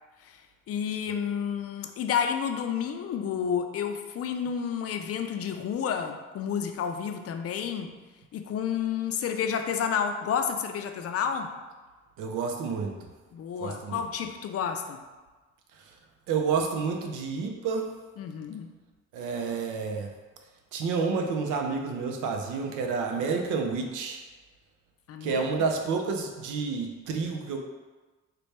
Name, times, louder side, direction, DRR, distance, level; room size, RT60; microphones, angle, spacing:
voice 1, 0.7-7.9 8.3-11.5 13.3-15.0 18.2-18.7 25.1-25.4, left 7 dB, 50° left, 6 dB, 0.4 m, -30 dB
voice 2, 12.2-13.1 13.6-14.1 16.3-17.9 19.1-20.1 20.7-24.2 25.2-27.6, right 5 dB, 85° right, 3 dB, 0.6 m, -29 dB
4.1 x 2.2 x 3.2 m, 1.2 s
cardioid pair, 90°, 30 cm